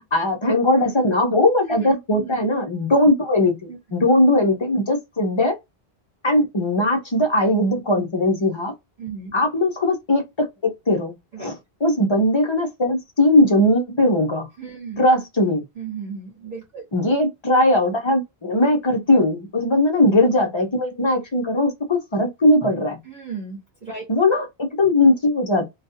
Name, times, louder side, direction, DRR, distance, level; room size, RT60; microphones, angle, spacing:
voice 1, 0.1-5.6 6.2-8.7 9.3-14.5 15.0-15.6 16.9-23.0 24.1-25.6, left 1 dB, 30° left, 0.6 m, -19 dB
voice 2, 1.7-2.4 3.7-3.8 9.0-9.3 11.3-11.6 14.6-15.1 15.8-16.8 23.0-24.0, right 5 dB, 45° right, 1.1 m, -35 dB
2.3 x 2.3 x 2.7 m
omnidirectional pair, 1.1 m